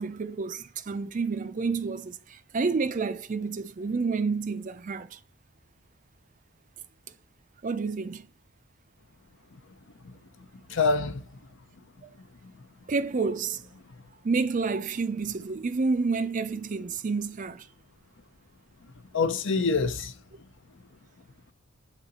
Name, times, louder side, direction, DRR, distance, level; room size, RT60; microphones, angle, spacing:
voice 1, 0.0-5.2 7.6-8.3 12.0-12.1 12.9-13.6 14.2-17.7, right 4 dB, 35° right, 0.4 m, -29 dB
voice 2, 10.7-11.2 12.4-12.5 19.1-20.1, left 4 dB, 60° left, 0.7 m, -25 dB
7.2 x 3.8 x 4.1 m
head